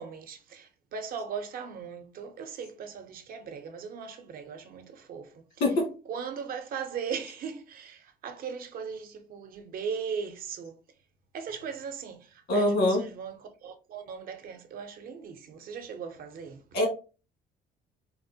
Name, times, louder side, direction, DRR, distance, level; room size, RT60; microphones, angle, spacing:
voice 1, 0.0-5.3 6.1-10.7 11.3-16.6, right 6 dB, 60° right, 0.7 m, -38 dB
voice 2, 12.5-13.0 16.7-16.9, left 1 dB, 85° left, 1.7 m, -23 dB
4.2 x 2.1 x 2.7 m
cardioid pair, 110°, 17 cm